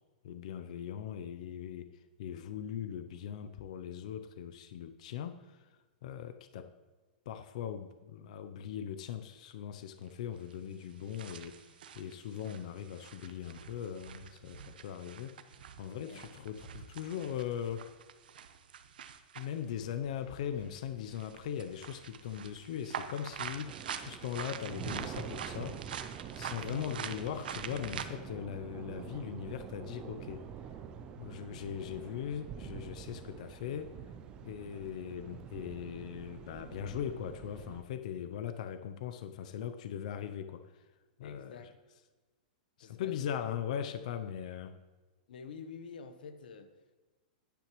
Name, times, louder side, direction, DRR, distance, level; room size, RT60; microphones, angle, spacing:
voice 1, 0.2-5.7 6.0-6.7 7.3-15.4 15.8-17.9 19.3-25.8 26.3-30.5 31.2-33.9 34.4-40.9 41.2-41.6 42.9-44.7, left 9 dB, 50° left, 10 dB, 0.5 m, -40 dB
sound 1, 9.5-9.6 10.5-10.6 11.0-19.6 20.6-20.8 21.1-28.0, right 8 dB, 80° right, 0.8 m, -45 dB
Explosion, 19.7-24.0, left 2 dB, 25° left, 1.1 m, -64 dB
sound 2, 23.6-37.8, right 8 dB, 20° right, 0.4 m, -46 dB
voice 2, 26.5-26.9 41.2-41.7 42.8-43.2 45.3-47.0, left 5 dB, 75° left, 9 dB, 1.0 m, -48 dB
11.5 x 10.0 x 3.1 m, 1.3 s
supercardioid pair, 170°, 5 cm